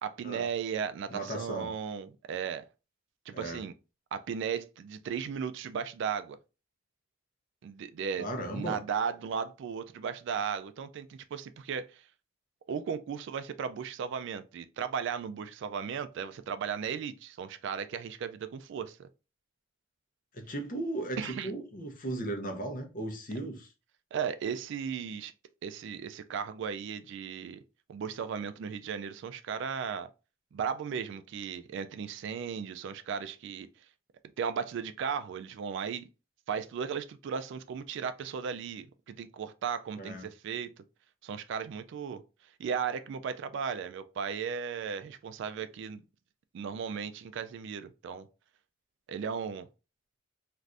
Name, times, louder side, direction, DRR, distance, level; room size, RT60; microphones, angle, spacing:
voice 1, 0.0-2.6 3.3-3.7 4.1-6.4 7.6-12.0 12.7-19.1 21.2-21.5 24.1-25.3 25.6-27.6 27.9-30.1 30.5-33.7 34.4-36.1 36.5-40.7 41.2-42.2 42.6-46.0 46.5-48.3 49.1-49.7, right 7 dB, 65° right, 0.3 m, -36 dB
voice 2, 1.1-1.7 3.3-3.6 8.2-8.8 20.3-23.7 40.0-40.3, right 1 dB, 45° left, 0.7 m, -36 dB
3.3 x 2.5 x 2.5 m
head